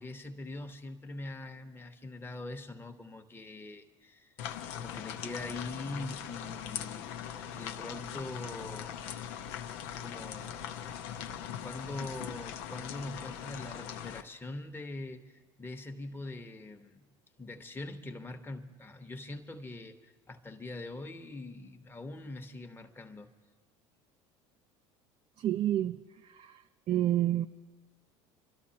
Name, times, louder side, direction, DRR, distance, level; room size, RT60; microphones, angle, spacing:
voice 1, 0.0-4.3 4.7-7.1 7.5-8.9 9.8-10.7 11.6-17.0 17.4-23.3, left 2 dB, 15° left, 1.0 m, -43 dB
sound 1, 4.4-14.2, left 9 dB, 75° left, 0.7 m, -40 dB
voice 2, 25.4-26.6 26.9-27.5, right 12 dB, 45° right, 0.4 m, -29 dB
29.5 x 12.5 x 2.8 m
hypercardioid pair, 80°, 15 cm